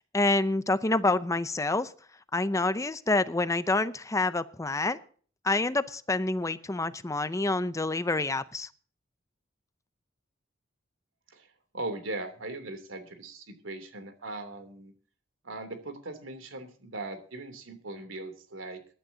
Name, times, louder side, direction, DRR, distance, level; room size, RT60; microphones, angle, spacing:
voice 1, 0.1-1.9 2.3-5.0 5.4-8.7, left 2 dB, 15° left, 14 dB, 0.6 m, -27 dB
voice 2, 11.7-14.9 15.4-18.8, right 2 dB, 90° right, 8 dB, 3.1 m, -39 dB
22.5 x 11.5 x 2.8 m, 0.44 s
head